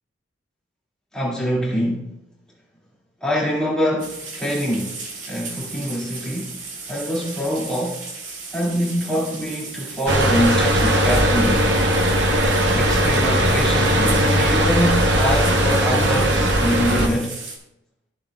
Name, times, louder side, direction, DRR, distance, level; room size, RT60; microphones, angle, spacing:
voice 1, 1.1-2.1 3.2-5.0 5.3-6.6 6.9-8.1 8.5-11.7 12.7-17.3, equal, 5° left, 2.2 m, -24 dB
sound 1, 4.0-17.6, right 4 dB, 85° right, 2.0 m, -36 dB
sound 2, 10.1-17.1, equal, 65° right, 1.0 m, -18 dB
13.0 x 7.2 x 2.3 m
head